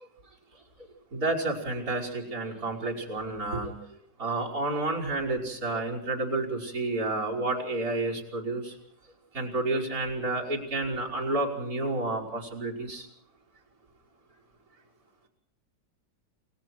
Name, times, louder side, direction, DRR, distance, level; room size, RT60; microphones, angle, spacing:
voice 1, 1.1-3.7 4.2-8.8 9.3-13.1, right 2 dB, 55° right, -3 dB, 5.8 m, -30 dB
29.5 x 20.5 x 4.7 m, 0.72 s
omnidirectional pair, 1.9 m